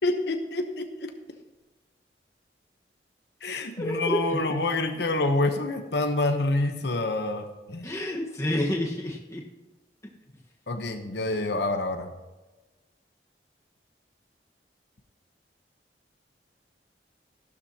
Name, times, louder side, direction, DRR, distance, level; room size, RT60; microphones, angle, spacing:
voice 1, 0.0-1.1 3.4-7.9 10.7-12.1, left 2 dB, 70° left, 5 dB, 0.9 m, -27 dB
voice 2, 3.8-4.4 7.8-9.4, left 1 dB, 15° left, -1 dB, 1.3 m, -29 dB
14.5 x 12.0 x 2.9 m, 1.1 s
head